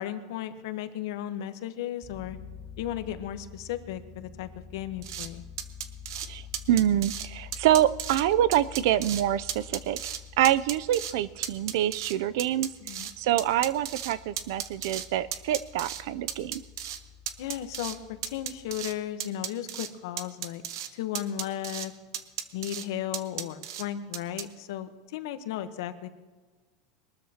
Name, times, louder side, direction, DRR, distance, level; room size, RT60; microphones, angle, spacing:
voice 1, 0.0-2.4 2.8-5.4 12.8-13.1 17.4-20.6 20.9-21.9 22.5-26.1, left 11 dB, 75° left, 10 dB, 1.1 m, -35 dB
sound 1, 2.0-18.8, left 7 dB, 10° left, 2.7 m, -48 dB
sound 2, 5.0-5.3 5.6-6.3 6.5-7.3 7.5-8.2 8.5-9.2 9.5-10.2 10.4-11.1 11.4-13.1 13.4-15.1 15.3-16.0 16.3-17.0 17.3-18.0 18.2-18.9 19.2-19.9 20.2-20.9 21.1-21.9 22.1-22.8 23.1-23.8 24.1-24.4, right 10 dB, 85° right, 0.9 m, -35 dB
voice 2, 6.7-10.0 10.4-12.7 13.2-16.6, right 12 dB, 70° right, 17 dB, 0.5 m, -26 dB
22.5 x 13.0 x 2.9 m, 1.3 s
supercardioid pair, 155°, 2 cm